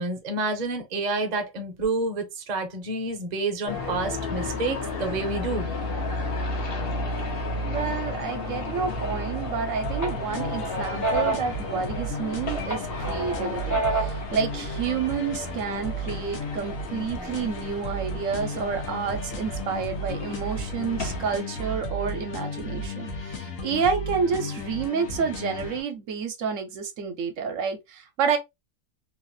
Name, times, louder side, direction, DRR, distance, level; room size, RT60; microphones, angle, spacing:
voice 1, 0.0-5.7, right 3 dB, 40° right, 0.7 m, -29 dB
sound 1, 3.7-21.4, left 2 dB, 55° left, 0.9 m, -33 dB
voice 2, 7.6-28.4, right 6 dB, 75° right, 1.0 m, -29 dB
sound 2, 9.0-9.6 10.0-12.3 12.7-14.3, right 2 dB, 25° left, 0.4 m, -29 dB
sound 3, 9.8-25.8, left 1 dB, 85° left, 1.2 m, -34 dB
3.0 x 2.4 x 2.6 m
omnidirectional pair, 1.4 m